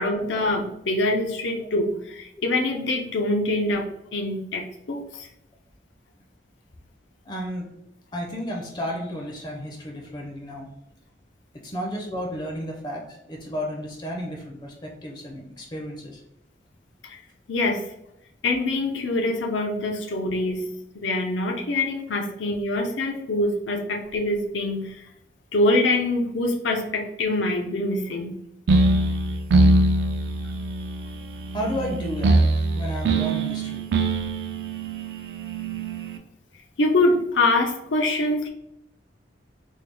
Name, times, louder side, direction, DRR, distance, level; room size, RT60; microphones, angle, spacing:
voice 1, 0.0-3.8 4.1-5.3 17.0-17.2 17.5-17.8 18.4-24.9 25.5-28.4 36.8-38.5, left 2 dB, 90° left, 2 dB, 0.6 m, -24 dB
voice 2, 7.3-7.7 8.1-10.7 11.6-16.2 31.5-32.4 32.7-33.8, equal, 25° left, 0 dB, 0.4 m, -32 dB
sound 1, 28.7-36.2, right 2 dB, 65° right, 0.4 m, -23 dB
3.4 x 2.2 x 3.2 m, 0.79 s
head